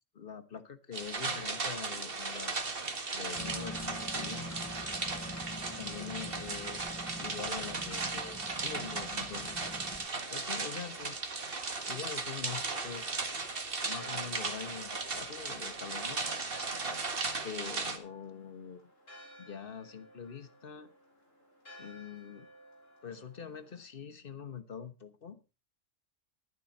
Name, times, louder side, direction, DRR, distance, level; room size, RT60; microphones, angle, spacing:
voice 1, 0.1-2.7 3.1-4.5 5.8-9.7 10.3-11.1 11.9-13.1 13.8-16.2 17.4-18.9 19.4-20.9 21.8-22.5 23.0-25.4, left 7 dB, 45° left, 12 dB, 1.3 m, -44 dB
sound 1, 0.9-18.0, right 4 dB, 45° right, 1.8 m, -36 dB
sound 2, 3.3-10.1, left 1 dB, 20° left, 0.5 m, -45 dB
Church bell, 13.6-23.8, equal, 80° left, 5.2 m, -55 dB
12.5 x 11.0 x 4.3 m, 0.31 s
omnidirectional pair, 1.3 m